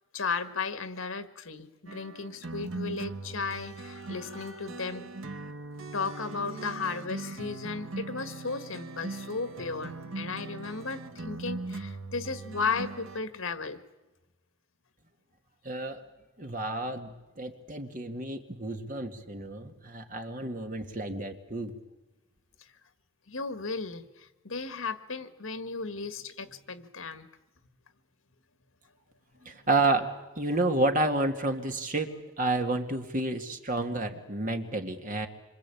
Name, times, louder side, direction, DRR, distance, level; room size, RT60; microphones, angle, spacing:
voice 1, 0.1-5.1 5.9-13.8 23.3-27.3, left 4 dB, 80° left, 11 dB, 1.7 m, -35 dB
sound 1, 1.9-13.2, right 3 dB, 75° right, 1.4 m, -40 dB
voice 2, 15.6-16.0 16.4-21.8 29.4-35.3, right 2 dB, 40° right, 5 dB, 2.3 m, -30 dB
26.5 x 25.5 x 8.6 m, 1.1 s
head